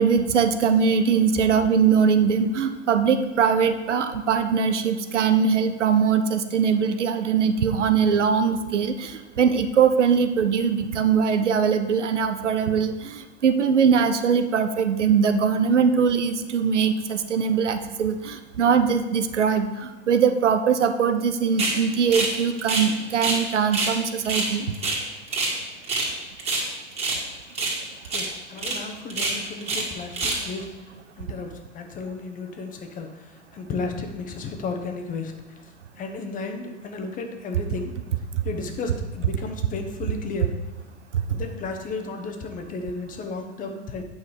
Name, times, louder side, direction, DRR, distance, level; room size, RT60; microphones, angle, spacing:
voice 1, 0.0-24.7, right 6 dB, 75° right, 9 dB, 0.8 m, -21 dB
sound 1, 21.6-21.8 22.1-22.3 22.6-23.4 23.7-23.9 24.2-25.6 25.8-26.1 26.4-27.2 27.5-27.8 28.0-28.3 28.6-28.8 29.1-29.9 30.1-30.5, right 3 dB, 15° right, 2.0 m, -26 dB
voice 2, 28.1-30.7 31.2-35.3 36.0-37.9 38.4-40.5 41.3-44.0, left 3 dB, 20° left, 5 dB, 1.0 m, -33 dB
9.0 x 5.4 x 4.8 m, 1.2 s
figure-of-eight pair, 100°, 36 cm